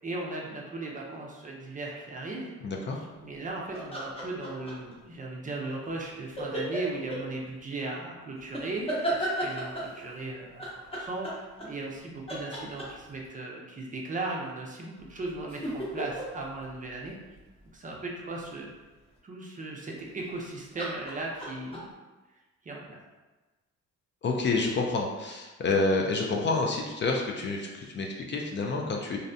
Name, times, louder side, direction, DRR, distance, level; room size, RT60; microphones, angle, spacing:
voice 1, 0.0-2.5 3.2-17.1 17.7-18.7 19.2-21.9 22.6-23.0, right 2 dB, 25° right, -2 dB, 0.5 m, -37 dB
voice 2, 2.6-3.0 24.2-29.2, left 3 dB, 40° left, 0 dB, 0.4 m, -28 dB
sound 1, 3.7-4.9 6.4-7.2 8.5-10.0 10.6-12.0 12.3-13.2 15.0-17.7 20.1-20.4 20.8-21.8, right 1 dB, 20° left, 0.8 m, -34 dB
2.6 x 2.0 x 2.6 m, 1.2 s
cardioid pair, 90°, 30 cm